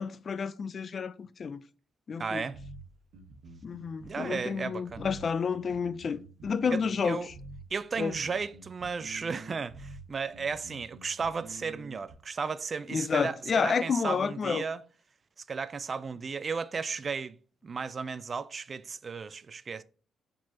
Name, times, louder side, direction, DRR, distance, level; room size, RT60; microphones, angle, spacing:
voice 1, 0.0-1.6 2.1-2.4 3.6-7.3 8.0-8.2 12.9-14.7, left 6 dB, 45° left, 0.4 m, -30 dB
voice 2, 2.2-2.6 4.0-5.0 6.7-7.3 7.7-14.8 15.5-17.4 17.6-19.8, right 5 dB, 40° right, 0.3 m, -34 dB
sound 1, 2.5-12.1, right 2 dB, 85° right, 1.2 m, -48 dB
4.8 x 3.8 x 2.9 m
cardioid pair, 90°, 0 cm